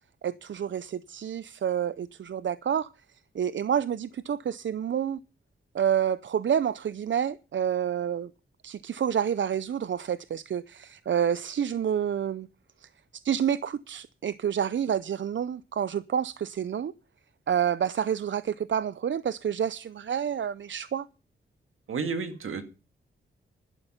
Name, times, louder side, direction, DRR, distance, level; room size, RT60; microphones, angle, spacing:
voice 1, 0.2-2.9 3.3-5.2 5.7-8.3 8.6-12.5 12.8-12.9 13.2-16.9 17.5-21.1, right 9 dB, 65° right, 0.6 m, -28 dB
voice 2, 21.9-22.7, right 5 dB, 80° right, 2.0 m, -31 dB
12.0 x 11.5 x 5.6 m
cardioid pair, 70°, 21 cm